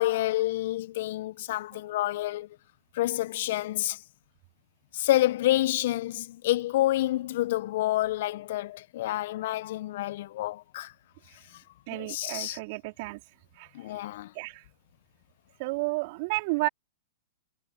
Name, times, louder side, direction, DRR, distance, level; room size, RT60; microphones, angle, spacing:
voice 1, 0.0-2.5 2.9-4.0 4.9-10.9 11.9-12.6 13.7-14.3, left 15 dB, 60° left, 0.7 m, -28 dB
voice 2, 11.9-13.2 13.6-13.7 14.3-14.6 15.6-16.7, right 26 dB, 50° right, 4.1 m, -31 dB
hypercardioid pair, 115°, 0 cm